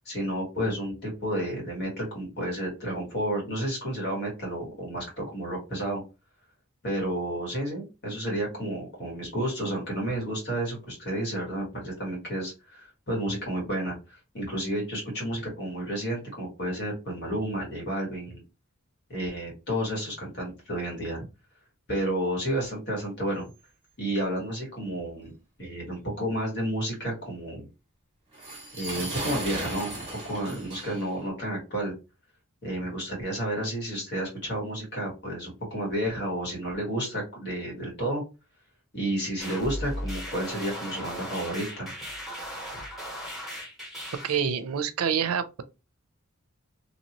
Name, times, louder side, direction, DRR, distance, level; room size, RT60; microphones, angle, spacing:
voice 1, 0.1-6.0 6.8-14.0 14.3-18.4 19.1-21.3 21.9-23.5 24.0-25.3 25.6-27.7 28.7-31.9 32.6-38.2 38.9-41.9, right 1 dB, 55° left, 1.8 m, -31 dB
sound 1, 28.3-31.2, right 2 dB, 30° right, 1.3 m, -36 dB
sound 2, 39.4-44.4, equal, ahead, 1.4 m, -37 dB
voice 2, 44.2-45.6, right 7 dB, 85° right, 0.4 m, -27 dB
2.8 x 2.8 x 2.9 m
head